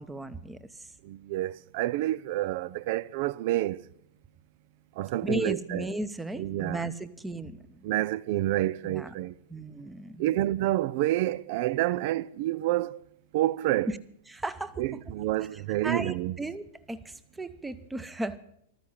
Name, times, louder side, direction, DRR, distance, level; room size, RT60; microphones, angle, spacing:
voice 1, 0.0-0.9 5.2-7.9 8.9-9.1 9.5-10.3 13.9-14.0 14.3-14.8 15.8-18.4, right 1 dB, 10° right, 0.9 m, -35 dB
voice 2, 1.0-3.9 5.0-5.9 6.3-6.9 7.8-9.4 10.2-13.0 13.3-13.9 14.8-16.4, right 15 dB, 55° right, 0.4 m, -28 dB
14.5 x 13.0 x 5.7 m
hypercardioid pair, 120°, 0 cm